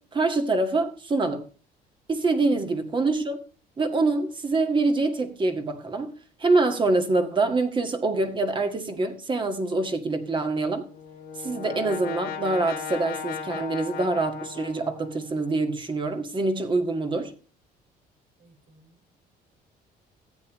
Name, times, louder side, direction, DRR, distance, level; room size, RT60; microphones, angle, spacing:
voice 1, 0.0-1.4 2.1-3.4 3.8-10.8 11.4-17.3, right 3 dB, 30° right, 1.8 m, -25 dB
Brass instrument, 10.7-15.5, left 7 dB, 65° left, 1.6 m, -36 dB
voice 2, 18.4-19.1, equal, 70° right, 5.1 m, -51 dB
14.0 x 8.8 x 3.1 m
cardioid pair, 110°, 17 cm